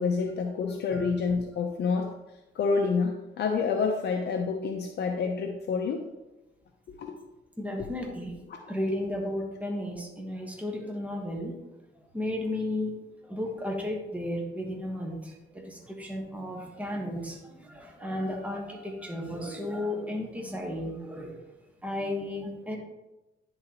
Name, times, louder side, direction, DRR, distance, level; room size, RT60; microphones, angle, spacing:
voice 1, 0.0-2.1 2.5-6.0 6.9-7.2 8.5-8.7, left 5 dB, 60° left, 3 dB, 0.6 m, -28 dB
voice 2, 7.6-8.3 8.7-11.6 12.1-12.9 13.2-21.4 21.8-22.8, left 1 dB, 5° right, 0 dB, 1.3 m, -34 dB
10.5 x 3.9 x 2.9 m, 0.99 s
cardioid pair, 90°, 20 cm